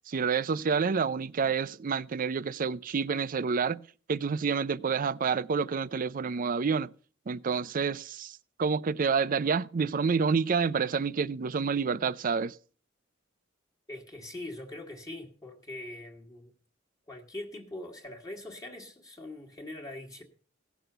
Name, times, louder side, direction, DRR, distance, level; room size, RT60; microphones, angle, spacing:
voice 1, 0.1-3.8 4.1-6.9 7.3-12.6, right 5 dB, 45° right, 0.4 m, -28 dB
voice 2, 13.9-16.5 17.1-20.2, left 1 dB, 20° left, 1.5 m, -42 dB
16.5 x 6.1 x 6.6 m
head